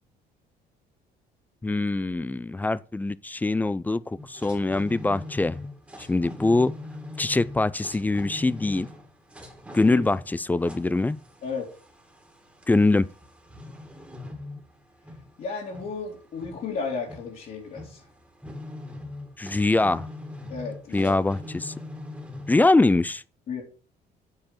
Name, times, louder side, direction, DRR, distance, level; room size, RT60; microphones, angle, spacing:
voice 1, 1.6-5.6 6.0-6.7 7.2-8.9 9.7-11.2 12.7-13.1 19.4-20.1 20.9-21.7 22.5-23.2, left 2 dB, 10° left, 0.3 m, -23 dB
sound 1, 4.2-22.5, left 1 dB, 5° right, 2.0 m, -42 dB
voice 2, 15.4-18.0 20.5-21.1 23.5-23.6, left 5 dB, 55° left, 2.6 m, -33 dB
7.9 x 4.5 x 6.9 m
cardioid pair, 110°, 17 cm